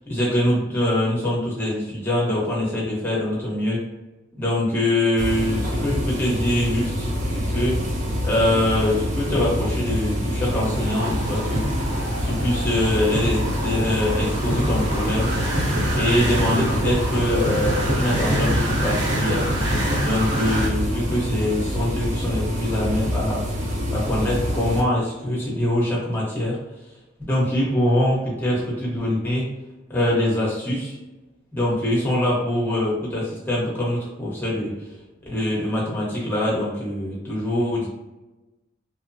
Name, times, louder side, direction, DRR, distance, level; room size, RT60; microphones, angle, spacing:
voice 1, 0.1-3.8 4.4-7.8 8.2-12.0 12.2-15.3 15.9-19.5 20.0-23.4 23.9-26.6 27.3-29.5 29.9-31.0 31.5-34.7 35.3-37.9, left 1 dB, 10° left, -6 dB, 0.8 m, -23 dB
sound 1, 5.2-24.8, equal, 35° right, 0.4 m, -26 dB
sound 2, 10.5-20.7, right 1 dB, 65° right, 0.9 m, -27 dB
2.8 x 2.1 x 2.6 m, 1.1 s
head